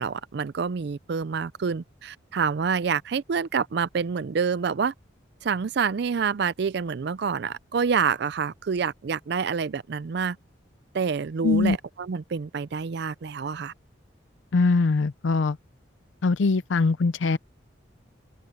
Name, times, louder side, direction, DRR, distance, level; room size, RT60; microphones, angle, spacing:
voice 1, 0.0-4.9 5.4-10.4 10.9-13.7, right 6 dB, 55° right, 0.4 m, -27 dB
voice 2, 11.4-11.8 14.5-15.6 16.2-17.4, left 3 dB, 70° left, 0.5 m, -22 dB
open air
head